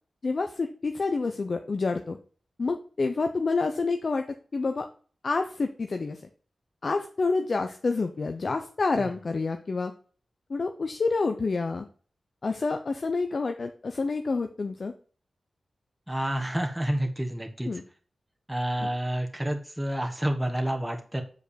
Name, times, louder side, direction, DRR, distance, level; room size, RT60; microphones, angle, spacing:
voice 1, 0.2-2.2 2.6-4.9 5.2-6.2 6.8-9.9 10.5-11.9 12.4-14.9 17.7-17.8 18.8-18.9, left 3 dB, 60° left, 6 dB, 0.6 m, -28 dB
voice 2, 16.1-17.7 18.5-21.2, right 1 dB, 10° right, 2 dB, 1.3 m, -29 dB
6.7 x 4.9 x 5.0 m, 0.42 s
cardioid pair, 50°, 0 cm